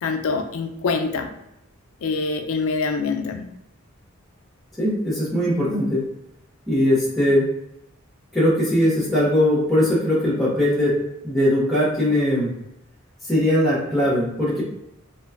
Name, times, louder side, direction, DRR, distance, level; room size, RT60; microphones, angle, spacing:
voice 1, 0.0-1.3 2.0-3.4, left 4 dB, 90° left, 5 dB, 0.4 m, -25 dB
voice 2, 4.8-6.0 6.7-7.5 8.3-11.0 11.2-12.5 13.3-14.6, left 1 dB, ahead, -6 dB, 0.8 m, -20 dB
2.5 x 2.2 x 2.3 m, 0.84 s
head